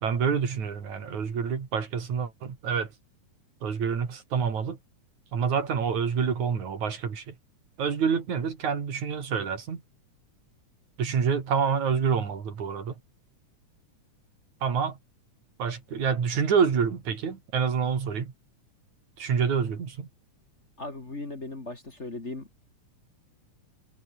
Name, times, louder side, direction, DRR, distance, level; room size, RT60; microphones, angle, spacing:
voice 1, 0.0-2.9 3.6-4.8 5.3-7.3 7.8-9.8 11.0-12.9 14.6-15.0 15.6-18.3 19.2-20.1, right 6 dB, 70° right, 4.6 m, -27 dB
voice 2, 20.8-22.5, left 2 dB, 25° left, 2.5 m, -37 dB
omnidirectional pair, 3.5 m